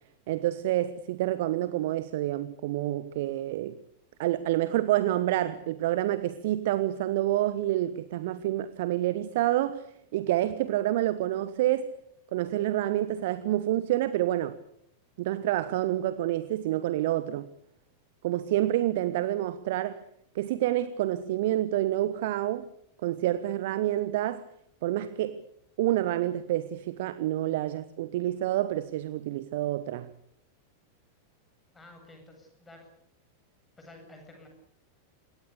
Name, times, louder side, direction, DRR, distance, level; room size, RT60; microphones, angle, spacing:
voice 1, 0.3-3.7 4.2-9.8 10.1-11.9 12.3-14.5 15.2-17.5 18.2-20.0 20.3-22.7 23.0-24.4 24.8-25.4 25.8-30.1, right 14 dB, 55° right, 1.1 m, -28 dB
voice 2, 31.7-32.9 33.8-34.5, left 2 dB, 15° left, 7.7 m, -51 dB
27.0 x 22.5 x 6.9 m
figure-of-eight pair, 90°, 0 cm